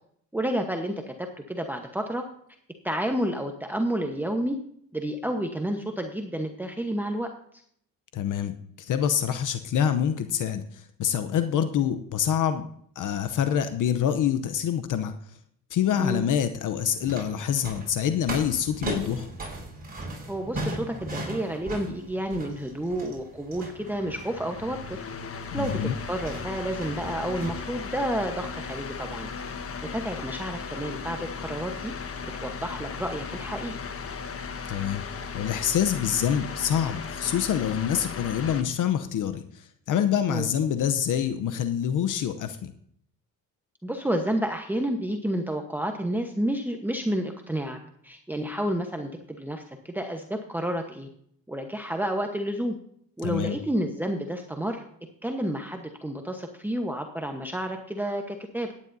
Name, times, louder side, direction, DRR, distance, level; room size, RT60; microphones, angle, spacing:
voice 1, 0.3-2.2 2.8-4.6 4.9-7.3 16.0-16.2 20.3-25.0 25.5-29.3 29.8-31.9 32.4-33.8 40.3-40.5 43.8-47.8 48.0-51.1 51.5-52.8 53.2-54.8 55.2-58.7, right 1 dB, 5° right, 4 dB, 1.0 m, -30 dB
voice 2, 8.1-12.7 13.0-15.3 15.7-19.3 25.5-25.9 34.7-35.0 35.3-42.7 53.2-53.6, left 9 dB, 60° left, 9 dB, 0.8 m, -26 dB
sound 1, 16.8-27.5, right 1 dB, 25° right, 5.5 m, -38 dB
sound 2, 23.8-38.6, left 5 dB, 40° left, 1.3 m, -36 dB
15.5 x 10.5 x 2.7 m, 0.67 s
cardioid pair, 90°, 35 cm